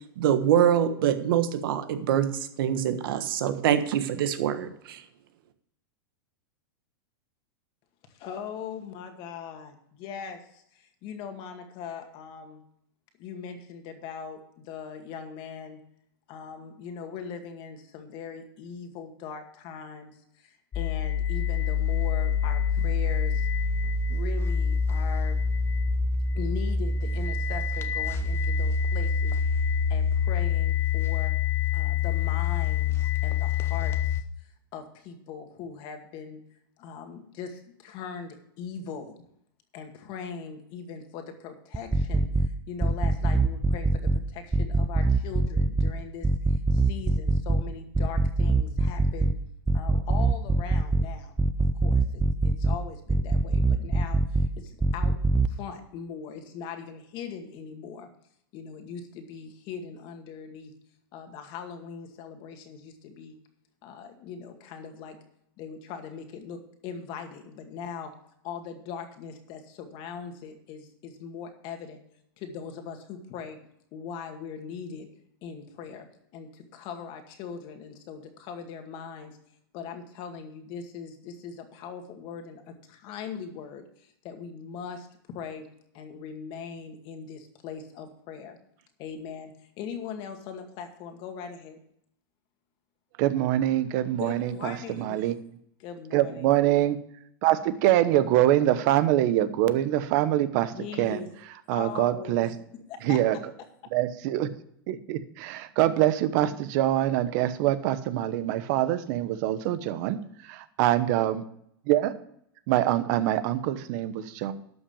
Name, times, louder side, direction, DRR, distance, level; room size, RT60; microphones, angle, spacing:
voice 1, 0.2-2.3 2.6-5.0, right 10 dB, 70° right, 10 dB, 1.4 m, -24 dB
voice 2, 8.1-12.6 13.2-15.8 16.3-23.5 24.1-25.4 26.3-29.4 29.9-31.3 31.7-34.2 34.7-36.4 36.8-39.2 39.7-49.4 49.7-51.4 51.8-55.2 55.5-58.1 58.5-60.7 61.1-63.4 63.8-65.2 65.6-68.1 68.4-72.0 72.4-73.6 73.9-75.1 75.4-79.4 79.7-85.7 85.9-88.6 89.0-91.8 94.2-95.4 95.8-96.5 100.7-101.3 101.7-103.4, left 6 dB, 45° left, 5 dB, 2.1 m, -40 dB
sound 1, 20.7-34.2, left 6 dB, 20° left, 0.9 m, -26 dB
sound 2, 41.7-42.5 42.8-44.2 44.5-45.9 46.2-47.6 47.9-49.3 49.7-51.0 51.4-52.8 53.1-54.5 54.8-55.5, right 3 dB, 5° right, 0.5 m, -23 dB
voice 3, 93.2-95.3 96.1-97.0 97.4-100.7 101.0-101.2 101.7-102.5 103.0-103.4 103.9-104.5 104.9-110.2 110.5-111.4 111.9-112.1 112.7-114.5, right 13 dB, 50° right, 13 dB, 1.0 m, -24 dB
12.0 x 6.0 x 7.0 m, 0.71 s
supercardioid pair, 140°, 12 cm